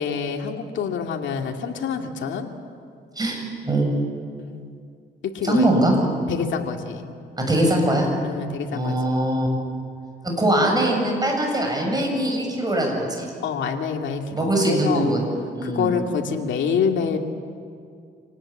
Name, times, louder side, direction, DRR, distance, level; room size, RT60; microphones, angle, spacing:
voice 1, 0.0-2.5 4.4-4.7 5.2-5.7 6.3-7.1 8.2-9.2 13.4-15.1 15.6-17.2, left 6 dB, 70° left, 2 dB, 2.4 m, -27 dB
voice 2, 3.2-3.9 5.4-6.0 7.4-8.1 8.7-9.5 10.2-13.3 14.3-15.2 15.6-15.9, right 1 dB, 20° right, 1 dB, 7.6 m, -22 dB
26.5 x 19.0 x 8.9 m, 2.3 s
cardioid pair, 90°, 20 cm